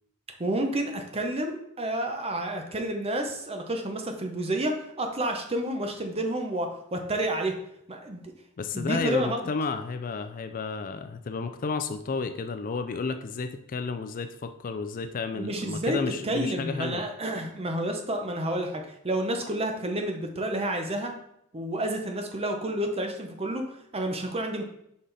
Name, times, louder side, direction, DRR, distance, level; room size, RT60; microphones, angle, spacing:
voice 1, 0.4-7.6 7.9-8.3 8.7-9.5 15.3-16.0 16.2-21.1 21.5-24.7, right 1 dB, 25° right, 4 dB, 0.9 m, -30 dB
voice 2, 8.6-17.1, left 4 dB, 40° left, 9 dB, 0.4 m, -32 dB
5.8 x 4.9 x 4.1 m, 0.77 s
head